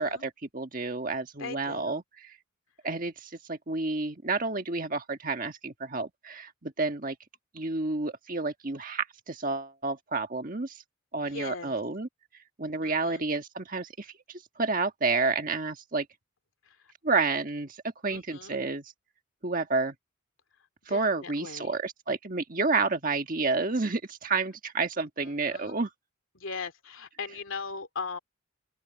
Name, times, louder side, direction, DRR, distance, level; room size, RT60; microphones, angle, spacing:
voice 1, 0.0-2.3 2.8-7.2 7.5-10.8 11.1-12.1 12.6-14.1 14.6-16.1 17.0-17.8 18.0-18.9 19.4-19.9 20.9-25.9, right 3 dB, 40° right, 1.5 m, -30 dB
voice 2, 1.4-2.0 11.2-11.8 12.8-13.2 18.1-18.6 20.9-21.7 25.0-25.8 26.4-28.2, left 4 dB, 70° left, 2.5 m, -39 dB
open air
head